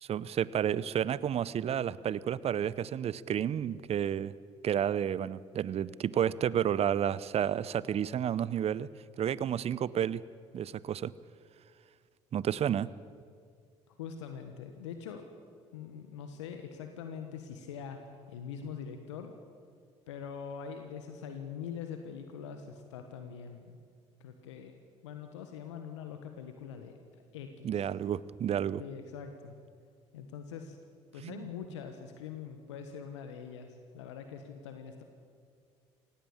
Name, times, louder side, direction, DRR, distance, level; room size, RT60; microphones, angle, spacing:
voice 1, 0.0-4.3 4.6-8.9 9.2-10.2 10.5-11.1 12.3-12.9 27.6-28.8 31.2-31.4, right 9 dB, 45° right, 19 dB, 0.6 m, -31 dB
voice 2, 13.9-15.2 15.7-18.0 18.3-19.3 20.1-23.8 24.2-27.0 27.3-27.9 28.8-29.6 30.1-30.8 31.1-35.0, left 7 dB, 85° left, 6 dB, 1.3 m, -43 dB
17.5 x 17.0 x 8.7 m, 2.2 s
hypercardioid pair, 60°, 15 cm